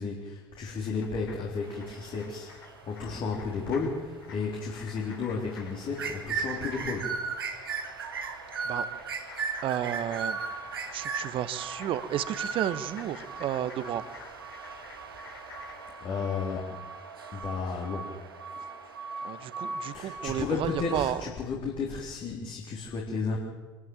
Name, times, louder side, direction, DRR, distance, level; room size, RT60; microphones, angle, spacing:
voice 1, 0.0-7.2 16.0-16.8 17.3-18.2 19.9-23.4, left 4 dB, 45° left, -1 dB, 3.6 m, -33 dB
sound 1, 0.8-15.9, left 5 dB, 75° left, 4.0 m, -51 dB
sound 2, 1.6-21.2, right 5 dB, 80° right, 1.9 m, -38 dB
voice 2, 9.6-10.4 10.9-14.0 19.2-21.2, right 11 dB, 50° right, 14 dB, 1.3 m, -32 dB
25.0 x 12.5 x 8.9 m, 1.3 s
figure-of-eight pair, 65°, 12 cm